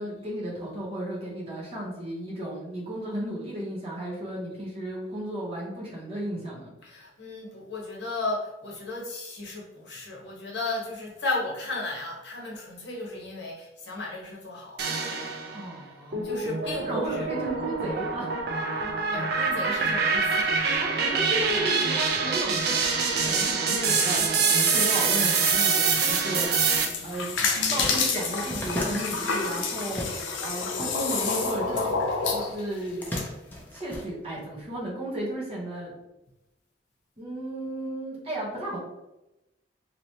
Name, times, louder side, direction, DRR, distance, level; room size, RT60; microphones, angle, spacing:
voice 1, 0.0-6.7 15.5-16.3 16.6-18.4 20.8-30.0 30.4-31.9 32.3-33.0 33.7-35.9 37.2-38.8, right 1 dB, 30° right, -5 dB, 0.9 m, -34 dB
voice 2, 6.8-14.8 16.2-17.3 19.1-20.5, left 2 dB, 60° left, -3 dB, 1.0 m, -34 dB
sound 1, 14.8-15.6 16.1-26.8, right 5 dB, 55° right, 0.5 m, -25 dB
sound 2, 26.6-33.2, left 4 dB, 80° left, 0.5 m, -28 dB
sound 3, 27.1-27.2 27.4-30.6 30.9-32.0 32.7-34.7, left 1 dB, 10° left, 0.5 m, -36 dB
3.1 x 2.9 x 2.7 m, 0.94 s
head